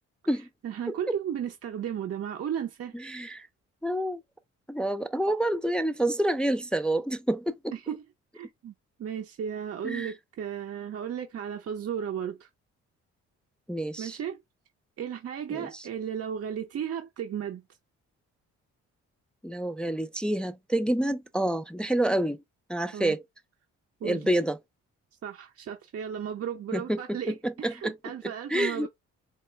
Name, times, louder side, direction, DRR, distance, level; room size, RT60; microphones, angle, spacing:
voice 1, 0.6-2.9 7.9-8.0 8.3-8.7 9.0-12.5 14.0-14.4 15.0-17.6 22.9-23.2 24.0-24.3 25.2-28.9, right 8 dB, 50° right, 0.7 m, -34 dB
voice 2, 2.9-3.5 3.8-4.2 4.7-7.7 9.8-10.1 13.7-14.2 15.5-15.7 19.4-22.4 22.7-23.2 24.0-24.6 26.7-28.0 28.2-28.9, right 1 dB, 5° left, 0.4 m, -28 dB
4.3 x 2.2 x 3.2 m
cardioid pair, 90°, 30 cm